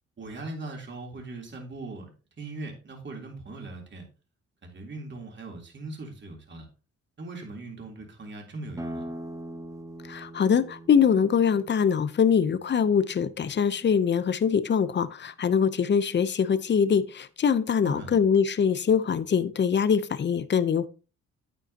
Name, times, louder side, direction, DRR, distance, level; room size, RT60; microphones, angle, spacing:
voice 1, 0.2-2.1 2.4-4.0 4.6-6.7 7.2-9.1 17.8-18.2, right 2 dB, 40° right, 1 dB, 3.4 m, -39 dB
sound 1, 8.8-14.1, right 1 dB, 10° right, 0.9 m, -42 dB
voice 2, 10.1-20.9, left 7 dB, 35° left, 14 dB, 0.8 m, -23 dB
9.2 x 8.9 x 2.9 m, 0.34 s
cardioid pair, 90°, 30 cm